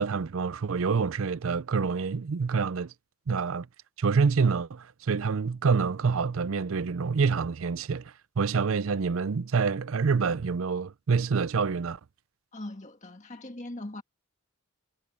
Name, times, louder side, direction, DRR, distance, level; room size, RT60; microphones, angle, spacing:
voice 1, 0.0-2.9 3.3-3.7 4.0-12.0, right 5 dB, 70° right, 0.5 m, -27 dB
voice 2, 12.5-14.0, left 1 dB, 35° left, 1.8 m, -40 dB
head